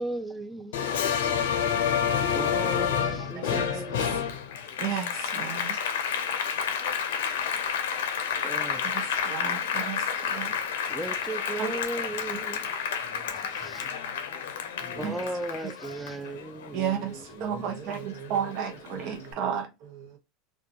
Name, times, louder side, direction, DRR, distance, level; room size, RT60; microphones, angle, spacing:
voice 1, 0.0-1.1 2.3-4.3 8.4-9.1 10.9-12.7 13.3-13.9 15.0-17.1, right 1 dB, 10° right, 0.4 m, -36 dB
Applause, 0.7-17.5 17.9-19.1, left 7 dB, 90° left, 0.5 m, -30 dB
voice 2, 3.2-4.1 4.8-5.9 8.8-10.6 11.6-11.7 12.3-12.6 15.0-15.1 15.6-15.7 16.7-19.7, right 8 dB, 50° right, 0.6 m, -33 dB
voice 3, 9.8-11.1 13.0-13.7 14.8-15.2 17.3-18.5 18.9-20.2, right 5 dB, 70° right, 1.1 m, -46 dB
2.4 x 2.2 x 2.7 m
supercardioid pair, 130°, 0 cm